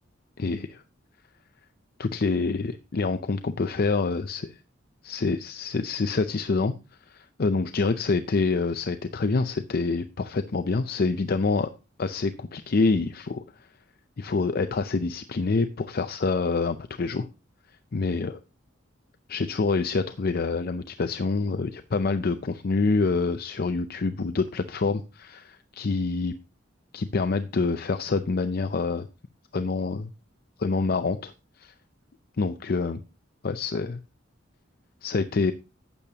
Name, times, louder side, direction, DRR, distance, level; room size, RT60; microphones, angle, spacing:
voice 1, 0.4-0.8 2.0-4.5 5.0-6.7 7.1-11.7 12.0-13.4 14.2-17.3 17.9-18.4 19.3-26.3 26.9-29.1 29.5-30.1 30.6-31.3 31.6-31.7 32.4-33.0 33.4-34.0 35.0-35.5, left 4 dB, 50° left, 9 dB, 0.5 m, -26 dB
12.5 x 8.4 x 2.9 m, 0.30 s
head